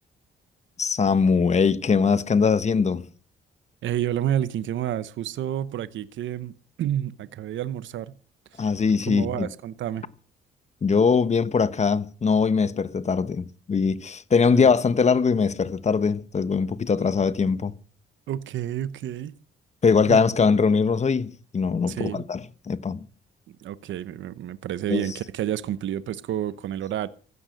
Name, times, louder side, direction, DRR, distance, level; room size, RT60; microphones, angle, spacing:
voice 1, 0.8-3.0 8.6-9.5 10.8-17.7 19.8-23.0 24.9-25.1, left 5 dB, 35° left, 1.2 m, -22 dB
voice 2, 3.8-6.5 6.8-8.1 9.1-10.1 14.5-14.7 18.3-19.3 20.1-20.2 21.9-22.2 23.5-27.1, right 11 dB, 75° right, 0.9 m, -29 dB
15.5 x 12.5 x 6.5 m
cardioid pair, 90°, 20 cm